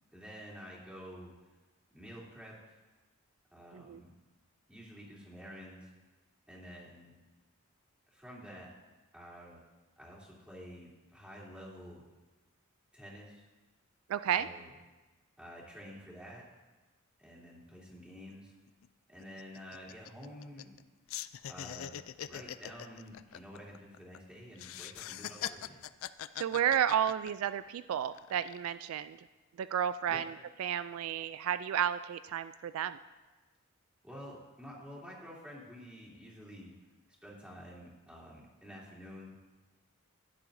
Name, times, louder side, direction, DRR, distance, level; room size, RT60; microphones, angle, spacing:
voice 1, 0.1-1.3 1.9-2.8 3.5-4.1 4.7-5.9 6.5-7.2 8.1-8.7 9.1-9.6 10.0-12.0 12.9-13.4 14.4-14.7 15.4-16.5 17.2-18.5 19.1-20.8 21.4-25.8 30.1-30.2 34.0-36.7 37.2-39.4, equal, 5° right, -6 dB, 3.0 m, -49 dB
voice 2, 14.1-14.5 26.4-29.2 29.6-33.0, right 9 dB, 75° right, 13 dB, 0.3 m, -32 dB
sound 1, 18.3-18.4 18.7-18.9 19.2-20.8 21.1-24.2 24.6-27.7 28.1-28.7, left 11 dB, 70° left, 0.4 m, -42 dB
15.5 x 9.9 x 2.7 m, 1.2 s
head